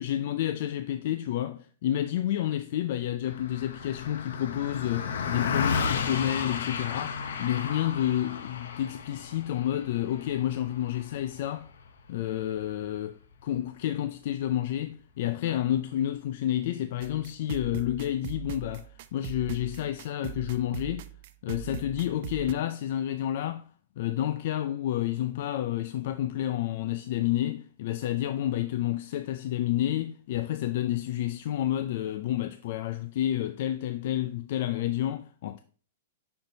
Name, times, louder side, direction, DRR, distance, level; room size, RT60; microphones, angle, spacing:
voice 1, 0.0-11.7 12.1-21.1 21.4-23.6 24.0-35.6, left 12 dB, 55° left, 0.4 m, -30 dB
Car passing by, 3.2-12.8, left 6 dB, 80° left, 0.8 m, -34 dB
sound 1, 17.0-22.5, right 13 dB, 55° right, 0.4 m, -40 dB
10.5 x 4.5 x 2.7 m
hypercardioid pair, 145°, 0 cm